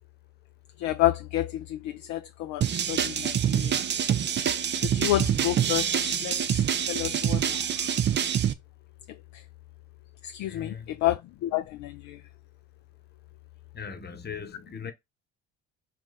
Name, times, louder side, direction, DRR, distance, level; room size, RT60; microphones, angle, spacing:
voice 1, 0.8-3.8 4.8-8.0 9.1-9.4 10.2-12.2, left 14 dB, 50° left, 0.4 m, -30 dB
sound 1, 2.6-8.5, right 9 dB, 30° right, 0.5 m, -26 dB
voice 2, 10.4-11.0 13.7-14.9, left 6 dB, 25° left, 0.9 m, -39 dB
4.0 x 2.3 x 3.9 m
hypercardioid pair, 60°, 39 cm